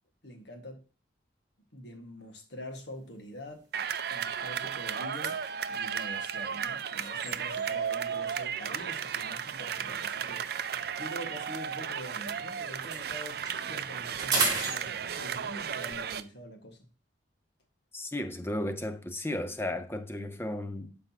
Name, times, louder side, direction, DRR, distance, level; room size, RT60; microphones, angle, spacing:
voice 1, 0.2-0.8 1.7-3.7 4.1-16.9, equal, 60° left, 1.8 m, -45 dB
sound 1, 2.8-3.0 3.5-3.6 4.0-7.9 8.8-12.3 12.6-15.5, right 3 dB, 25° right, 3.0 m, -37 dB
sound 2, 3.7-16.2, right 7 dB, 55° right, 0.4 m, -34 dB
voice 2, 17.9-21.0, left 1 dB, 10° left, 0.6 m, -34 dB
11.5 x 5.2 x 2.9 m
head